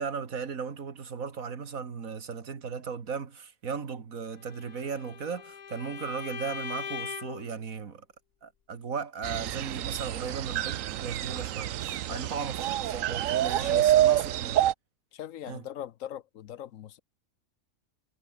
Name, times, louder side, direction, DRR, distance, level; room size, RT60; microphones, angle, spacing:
voice 1, 0.0-8.1 8.4-14.6 15.5-15.7, right 6 dB, 90° right, 2.3 m, -36 dB
Bowed string instrument, 4.5-7.5, left 8 dB, 45° left, 0.6 m, -40 dB
sound 1, 9.2-14.7, right 12 dB, 75° right, 1.0 m, -27 dB
voice 2, 12.1-12.5 13.6-14.2 15.1-17.0, left 11 dB, 75° left, 1.1 m, -41 dB
omnidirectional pair, 1.4 m